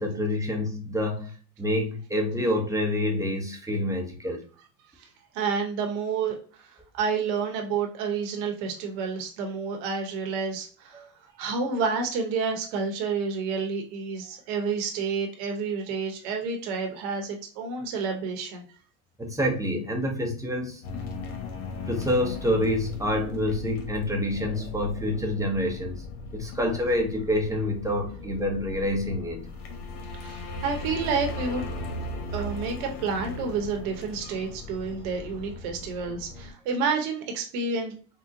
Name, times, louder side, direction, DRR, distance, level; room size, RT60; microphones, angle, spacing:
voice 1, 0.0-1.3 1.6-4.4 10.9-11.1 19.2-20.8 21.9-26.0 26.3-29.5, left 1 dB, 10° right, 2 dB, 0.6 m, -27 dB
voice 2, 5.3-6.7 7.0-11.0 11.4-18.6 30.1-31.7 32.3-37.9, right 5 dB, 70° right, 3 dB, 1.0 m, -29 dB
sound 1, 20.8-36.5, left 2 dB, 75° left, 1.0 m, -37 dB
3.9 x 2.1 x 2.5 m, 0.39 s
supercardioid pair, 105°, 45 cm